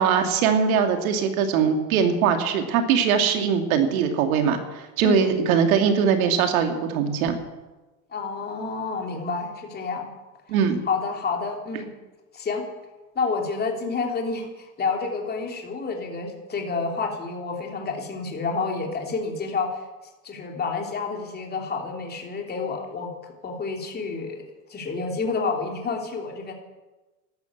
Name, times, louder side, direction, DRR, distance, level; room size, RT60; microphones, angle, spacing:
voice 1, 0.0-7.4 10.5-10.8, right 7 dB, 80° right, 6 dB, 2.5 m, -21 dB
voice 2, 5.0-5.4 8.1-10.1 10.9-11.9 12.3-12.6 13.1-19.8 20.2-23.1 23.4-24.4 24.7-26.5, left 4 dB, 25° left, 1 dB, 3.1 m, -29 dB
13.0 x 12.0 x 8.2 m, 1.2 s
supercardioid pair, 130°, 41 cm